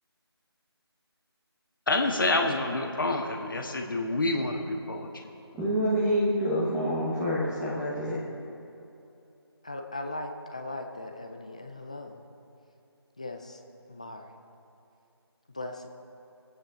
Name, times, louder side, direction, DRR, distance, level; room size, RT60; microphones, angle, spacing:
voice 1, 1.9-5.1, left 2 dB, 50° left, 3 dB, 1.6 m, -27 dB
voice 2, 5.5-8.2, equal, 5° right, -8 dB, 1.1 m, -27 dB
voice 3, 9.6-12.2 13.2-13.6 13.9-14.3 15.5-15.9, left 2 dB, 15° left, 4 dB, 0.4 m, -38 dB
24.0 x 8.8 x 3.8 m, 2.8 s
figure-of-eight pair, 160°, 14 cm